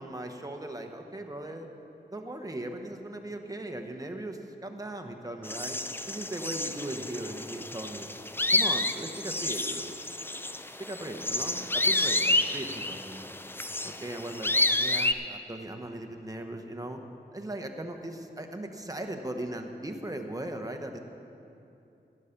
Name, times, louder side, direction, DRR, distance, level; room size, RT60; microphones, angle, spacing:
voice 1, 0.0-1.7 2.1-5.8 6.1-8.1 8.5-10.0 10.2-10.4 10.8-13.3 13.8-17.0 17.3-21.0, right 1 dB, 20° right, 4 dB, 1.1 m, -38 dB
sound 1, 5.4-15.1, left 2 dB, 10° left, 0.4 m, -30 dB
12.0 x 9.9 x 5.9 m, 2.7 s
wide cardioid pair, 60°, 18 cm